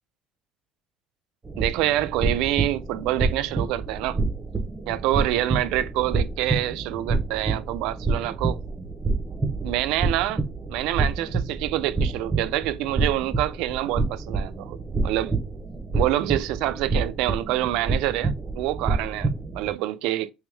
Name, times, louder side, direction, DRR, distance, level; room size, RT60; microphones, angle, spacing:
sound 1, 1.4-19.7, right 3 dB, 15° right, 0.8 m, -28 dB
voice 1, 1.6-4.2 4.9-8.6 9.6-10.4 10.7-15.3 15.9-20.3, right 14 dB, 80° right, 0.4 m, -26 dB
3.5 x 3.0 x 3.3 m
cardioid pair, 130°, 0 cm